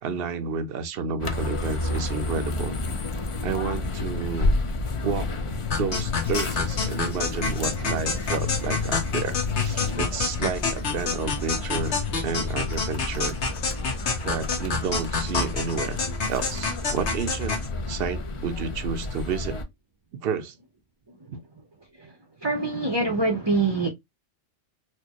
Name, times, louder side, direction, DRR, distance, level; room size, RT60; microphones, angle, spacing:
voice 1, 0.0-2.8 3.4-4.5 5.0-11.9 12.2-13.4 14.2-17.6 17.9-19.6 20.2-20.5 21.3-21.4, right 6 dB, 60° right, 0.7 m, -31 dB
sound 1, 1.2-19.6, left 3 dB, 45° left, 0.4 m, -30 dB
sound 2, 5.7-17.7, left 4 dB, 65° left, 1.3 m, -29 dB
voice 2, 22.4-23.9, right 3 dB, 30° right, 0.6 m, -24 dB
4.3 x 2.2 x 2.9 m
omnidirectional pair, 1.2 m